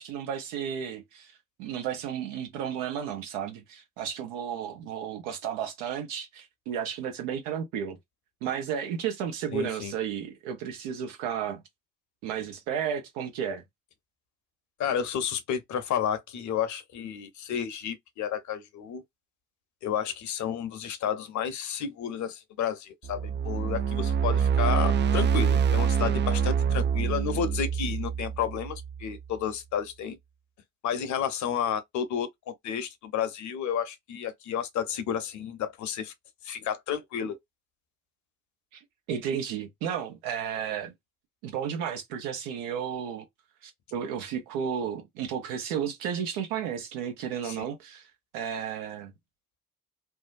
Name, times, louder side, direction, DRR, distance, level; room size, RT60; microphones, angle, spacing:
voice 1, 0.0-1.3 1.6-8.0 8.4-11.6 12.2-13.6 38.7-38.8 39.1-40.9 41.4-43.3 43.6-48.0 48.3-49.1, right 8 dB, 80° right, 1.0 m, -33 dB
voice 2, 9.5-9.9 14.8-19.0 19.8-30.2 30.8-32.3 32.6-36.1 36.4-37.4 47.4-47.6, left 8 dB, 60° left, 0.8 m, -31 dB
sound 1, 23.0-29.2, right 7 dB, 35° right, 0.4 m, -26 dB
2.7 x 2.2 x 2.5 m
hypercardioid pair, 50°, 32 cm